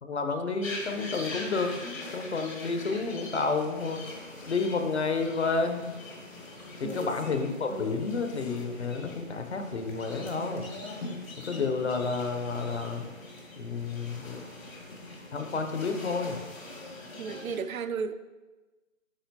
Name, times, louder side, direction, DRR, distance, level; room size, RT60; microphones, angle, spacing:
voice 1, 0.0-4.0 4.4-5.8 6.8-10.7 11.5-13.0 13.6-14.4 15.3-16.4, left 4 dB, 55° left, 6 dB, 0.7 m, -30 dB
sound 1, 0.6-17.6, left 2 dB, 80° left, 1.9 m, -42 dB
voice 2, 6.8-7.4 7.7-8.0 17.2-18.1, right 6 dB, 85° right, 12 dB, 0.5 m, -35 dB
9.1 x 3.9 x 2.7 m, 1.2 s
figure-of-eight pair, 165°, 40 cm